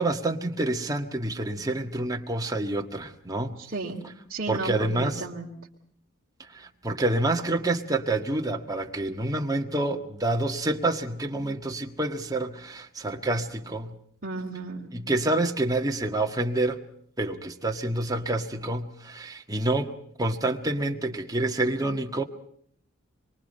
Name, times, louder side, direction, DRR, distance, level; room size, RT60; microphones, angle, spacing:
voice 1, 0.0-3.6 4.5-5.2 6.4-13.9 14.9-16.8 17.2-19.9 20.2-22.2, right 2 dB, 20° right, 3 dB, 1.6 m, -28 dB
voice 2, 3.6-4.0 4.3-5.5 14.2-14.9, right 3 dB, 45° right, -5 dB, 3.0 m, -34 dB
25.5 x 23.5 x 5.5 m, 0.66 s
head